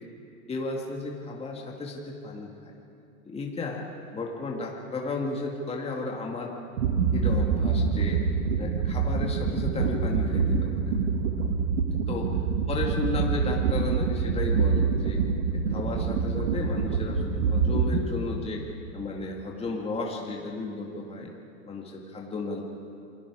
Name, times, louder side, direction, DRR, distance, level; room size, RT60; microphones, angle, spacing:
voice 1, 0.5-2.7 3.2-3.8 4.1-6.5 7.1-8.2 8.6-10.9 12.1-12.3 12.7-15.2 15.5-18.6 18.9-21.3 21.7-22.6, left 3 dB, 15° left, -1 dB, 2.3 m, -34 dB
sound 1, 6.8-18.0, right 5 dB, 70° right, 2.1 m, -26 dB
28.5 x 21.0 x 4.9 m, 2.7 s
hypercardioid pair, 105°, 42 cm